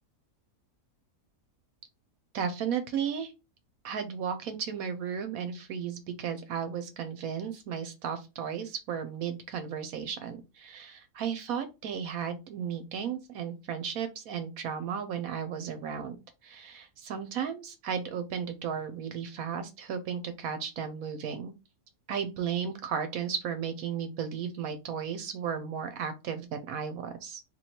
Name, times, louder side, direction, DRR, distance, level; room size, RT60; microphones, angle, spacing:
voice 1, 2.3-3.3 3.8-16.2 16.4-21.5 22.1-27.4, right 7 dB, 70° right, 9 dB, 1.0 m, -34 dB
3.1 x 2.8 x 4.2 m, 0.26 s
omnidirectional pair, 1.7 m